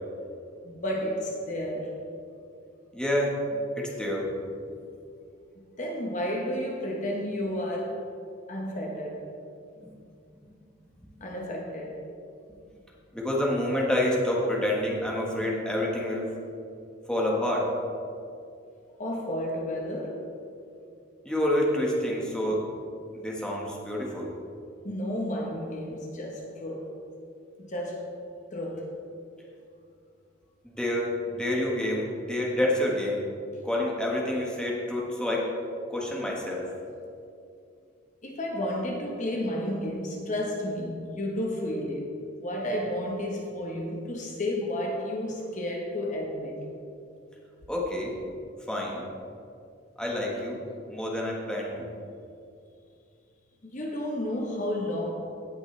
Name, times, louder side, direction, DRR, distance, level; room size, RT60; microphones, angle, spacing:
voice 1, 0.6-1.9 5.6-8.0 8.5-9.3 11.2-12.0 19.0-20.3 24.8-26.9 27.6-28.1 28.5-28.9 38.2-42.1 42.4-46.6 53.6-55.1, left 1 dB, 40° left, -1 dB, 1.1 m, -32 dB
voice 2, 2.9-3.4 3.8-4.3 9.8-9.9 13.1-16.3 17.1-17.7 21.2-22.6 23.1-24.3 30.6-33.2 33.6-35.4 35.9-36.6 47.7-48.1 48.7-49.0 50.0-50.6 50.9-51.9, left 1 dB, 5° left, -3 dB, 1.4 m, -28 dB
17.0 x 6.0 x 3.3 m, 2.5 s
head